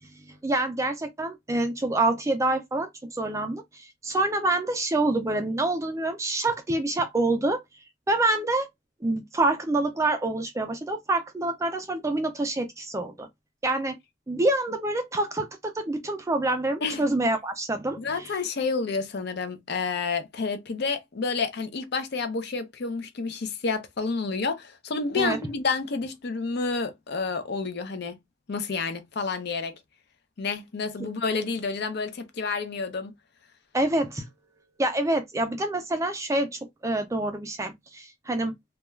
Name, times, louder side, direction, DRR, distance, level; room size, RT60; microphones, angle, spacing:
voice 1, 0.3-7.6 8.1-8.7 9.0-13.3 13.6-14.0 14.3-18.3 25.2-25.4 33.7-34.3 34.8-38.5, right 2 dB, 15° right, 0.3 m, -26 dB
voice 2, 18.0-28.2 28.5-29.8 30.4-33.2, left 4 dB, 50° left, 0.5 m, -29 dB
2.3 x 2.2 x 3.0 m
head